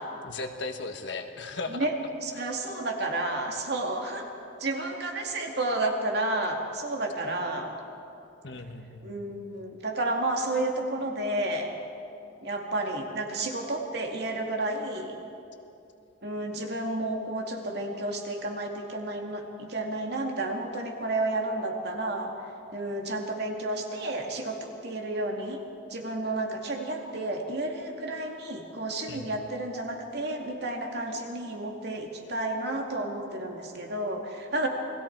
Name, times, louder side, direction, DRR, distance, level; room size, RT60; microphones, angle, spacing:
voice 1, 0.2-1.9 8.4-9.1 29.1-29.3, left 3 dB, 65° left, 5 dB, 1.5 m, -36 dB
voice 2, 2.2-4.3 4.6-7.7 9.0-11.7 12.4-15.2 16.2-22.3 22.7-25.6 25.9-34.7, right 2 dB, 55° right, 2 dB, 2.4 m, -31 dB
29.0 x 20.5 x 4.7 m, 2.8 s
head